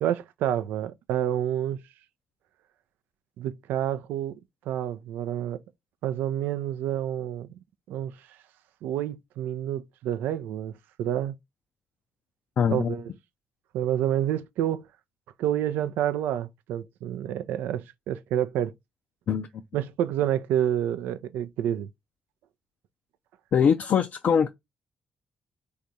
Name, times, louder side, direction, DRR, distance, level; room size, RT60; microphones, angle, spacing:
voice 1, 0.0-1.8 3.4-4.4 4.7-5.6 6.0-7.5 7.9-8.1 8.8-11.3 12.7-13.1 13.7-14.9 15.4-18.7 19.7-21.9, right 11 dB, 75° right, 0.3 m, -28 dB
voice 2, 12.6-13.0 19.3-19.5 23.5-24.5, left 7 dB, 60° left, 0.4 m, -22 dB
3.4 x 2.4 x 3.9 m
hypercardioid pair, 40°, 3 cm